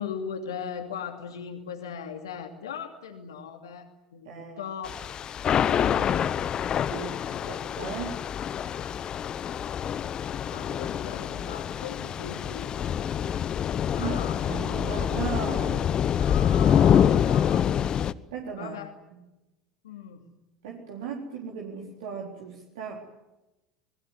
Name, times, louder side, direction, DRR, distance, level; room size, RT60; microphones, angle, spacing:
voice 1, 0.0-4.9 7.3-7.5 10.5-13.0 13.9-14.5 16.2-17.8 18.5-18.9 19.8-20.3, left 7 dB, 70° left, 5 dB, 2.7 m, -39 dB
voice 2, 4.3-4.6 6.9-7.2 7.5-8.3 14.0-14.2 14.5-15.9 18.3-18.8 20.6-23.0, right 6 dB, 60° right, 0 dB, 3.9 m, -36 dB
Thunder / Rain, 4.8-18.1, left 9 dB, 35° left, 1.0 m, -26 dB
27.5 x 21.0 x 9.7 m, 1.0 s
figure-of-eight pair, 75°, 2 cm